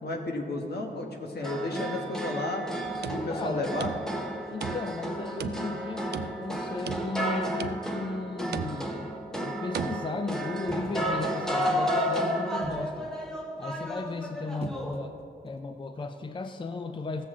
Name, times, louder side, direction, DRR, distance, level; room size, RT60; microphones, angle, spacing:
voice 1, 0.0-2.7 3.0-3.9, left 2 dB, 75° left, 2 dB, 1.3 m, -32 dB
sound 1, 1.4-15.1, equal, 5° left, 0.9 m, -32 dB
sound 2, 2.9-4.3 4.6-5.1 5.4-6.5 6.9-7.3 7.6-8.1 8.5-9.0 9.7-10.0, right 8 dB, 80° right, 0.4 m, -37 dB
voice 2, 3.3-3.7 4.5-13.1 13.6-15.2 15.4-17.3, left 3 dB, 30° left, 7 dB, 0.4 m, -35 dB
sound 3, 10.6-11.2 12.6-13.0 14.6-15.2 15.5-15.6, right 2 dB, 35° right, 0.9 m, -40 dB
15.5 x 7.2 x 3.7 m, 2.7 s
wide cardioid pair, 125°, 17 cm